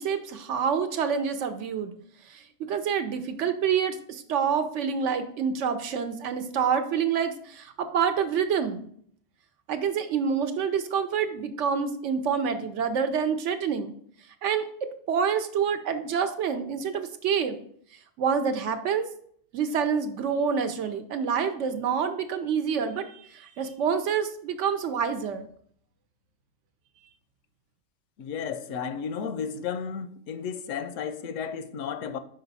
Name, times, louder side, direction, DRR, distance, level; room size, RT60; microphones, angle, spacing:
voice 1, 0.0-1.9 2.3-2.4 2.7-8.9 9.7-13.9 14.4-17.6 18.2-19.1 19.5-25.5, right 7 dB, 70° right, 1.0 m, -27 dB
voice 2, 28.2-32.2, left 7 dB, 85° left, 0.9 m, -33 dB
5.2 x 4.9 x 4.0 m
omnidirectional pair, 1.3 m